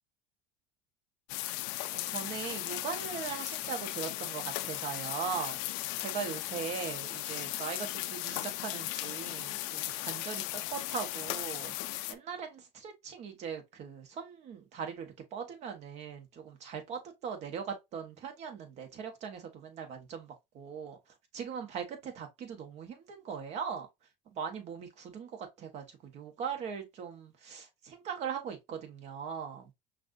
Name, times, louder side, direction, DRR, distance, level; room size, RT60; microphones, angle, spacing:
sound 1, 1.3-12.1, left 17 dB, 70° left, 0.5 m, -37 dB
voice 1, 1.9-5.6 6.0-21.0 21.3-23.9 24.3-25.3 25.6-29.7, right 7 dB, 55° right, 1.5 m, -40 dB
5.8 x 2.6 x 2.7 m
supercardioid pair, 90°, 14 cm